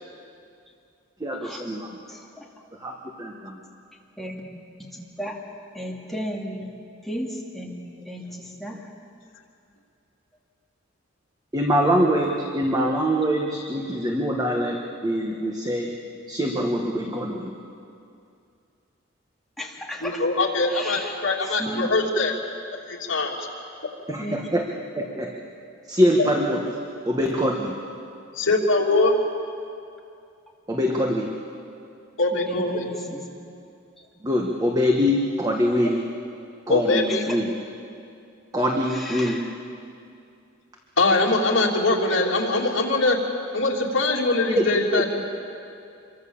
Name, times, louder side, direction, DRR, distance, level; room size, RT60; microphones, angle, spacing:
voice 1, 1.2-2.0 2.7-3.6 11.5-15.9 16.3-17.5 24.1-24.7 24.9-25.4 25.9-27.8 30.7-31.3 34.2-36.2 36.7-37.6 38.5-39.5 44.5-45.0, equal, 20° right, 1 dB, 1.5 m, -24 dB
voice 2, 5.7-6.7 7.1-7.3 7.5-7.7 8.1-8.2 8.6-8.7 19.6-20.2 20.8-21.0 21.6-21.9 24.2-24.3 32.5-33.0, equal, ahead, -2 dB, 2.6 m, -32 dB
voice 3, 20.0-22.3 22.9-23.4 26.2-26.3 28.3-29.1 32.2-32.9 36.7-37.2 41.0-43.2 43.5-45.2, left 2 dB, 70° left, -3 dB, 3.0 m, -22 dB
26.0 x 23.0 x 7.3 m, 2.5 s
head